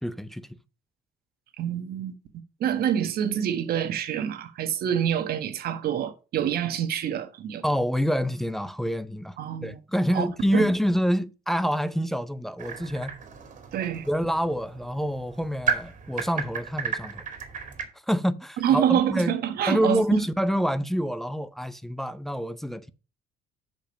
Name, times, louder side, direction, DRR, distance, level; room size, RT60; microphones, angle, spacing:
voice 1, 0.0-0.5 7.6-9.4 9.6-13.2 14.0-17.2 18.1-19.3 19.7-22.9, equal, ahead, 0.5 m, -27 dB
voice 2, 1.6-2.1 2.6-7.6 9.4-9.8 10.1-10.3 10.5-10.7 13.7-14.0 18.6-20.2, right 9 dB, 65° right, 1.3 m, -26 dB
sound 1, 12.6-17.8, right 6 dB, 45° right, 2.3 m, -34 dB
6.9 x 5.2 x 6.2 m
cardioid pair, 110°, 17 cm